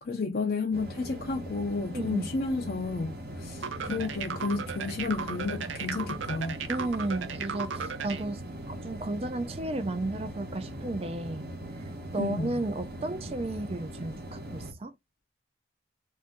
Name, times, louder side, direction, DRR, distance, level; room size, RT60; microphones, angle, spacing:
voice 1, 0.0-6.6 12.2-12.5, left 3 dB, 50° left, 0.5 m, -32 dB
sound 1, 0.7-14.7, right 1 dB, 55° right, 0.9 m, -40 dB
voice 2, 1.9-2.3 6.7-8.4 8.7-11.5 12.1-14.9, right 2 dB, 30° right, 0.4 m, -33 dB
sound 2, 3.6-8.2, right 6 dB, 90° right, 0.5 m, -35 dB
2.6 x 2.6 x 3.5 m
head